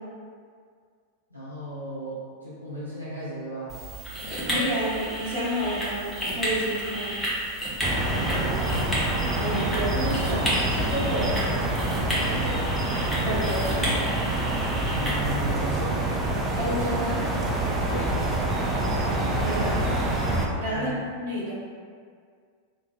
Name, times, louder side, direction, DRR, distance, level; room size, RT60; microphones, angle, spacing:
voice 1, 1.3-3.8 8.3-9.0 11.1-11.3 12.3-12.6 14.9-16.0 17.9-18.1 20.7-21.0, equal, 90° right, -11 dB, 0.6 m, -35 dB
sound 1, 3.7-15.5, equal, 5° left, 0.7 m, -32 dB
voice 2, 4.5-7.2 9.4-11.6 13.2-14.0 16.6-17.3 18.7-20.2 20.5-21.5, right 1 dB, 50° right, -9 dB, 0.9 m, -30 dB
sound 2, 7.8-20.5, right 1 dB, 15° right, 0.3 m, -26 dB
2.6 x 2.0 x 2.5 m, 2.1 s
figure-of-eight pair, 90°, 0 cm